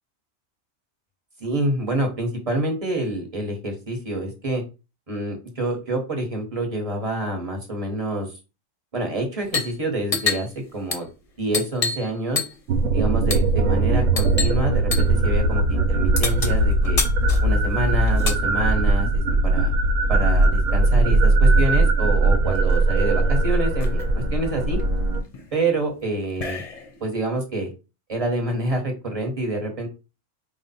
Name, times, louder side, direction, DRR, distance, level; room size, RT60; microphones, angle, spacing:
voice 1, 1.4-4.6 5.1-8.3 8.9-11.1 11.4-12.4 12.9-17.0 17.4-19.7 20.1-24.0 24.3-24.8 25.5-26.6 27.0-27.7 28.1-29.9, right 1 dB, 30° right, 1 dB, 1.1 m, -27 dB
sound 1, 9.4-9.8 10.0-12.1 12.4-12.7 13.3-13.5 14.2-14.6 14.9-15.1 16.2-18.4 19.5-20.6 21.8-21.9 22.1-22.7 23.2-23.3 23.5-24.0 24.6-27.0, left 4 dB, 40° left, 0.6 m, -29 dB
sound 2, 12.7-25.2, right 2 dB, 75° right, 1.0 m, -20 dB
4.8 x 2.1 x 4.1 m, 0.30 s
omnidirectional pair, 1.3 m